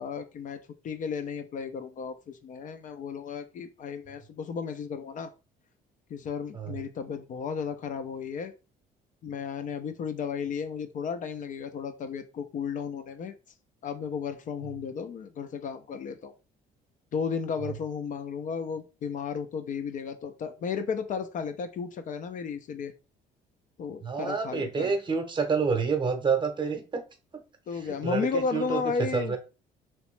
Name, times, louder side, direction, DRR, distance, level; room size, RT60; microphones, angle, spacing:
voice 1, 0.0-5.3 6.1-8.5 9.2-13.3 13.8-16.3 17.1-22.9 23.8-24.9 27.7-29.4, left 6 dB, 50° left, 8 dB, 0.5 m, -34 dB
voice 2, 24.0-27.0 27.8-28.8 29.1-29.4, right 5 dB, 25° right, 5 dB, 0.8 m, -28 dB
3.1 x 2.9 x 3.1 m, 0.31 s
cardioid pair, 110°, 17 cm